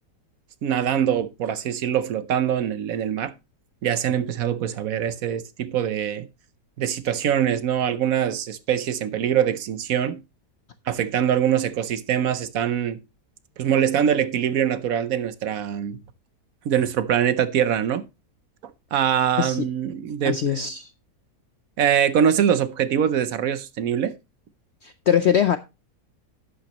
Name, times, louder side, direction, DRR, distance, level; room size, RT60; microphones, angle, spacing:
voice 1, 0.6-3.3 3.8-6.3 6.8-10.2 10.9-13.0 13.6-16.0 16.6-18.0 18.9-20.6 21.8-24.1, right 9 dB, 65° right, 1.1 m, -23 dB
voice 2, 20.2-20.9 24.8-25.6, left 8 dB, 65° left, 0.6 m, -22 dB
11.5 x 8.7 x 2.9 m
omnidirectional pair, 1.8 m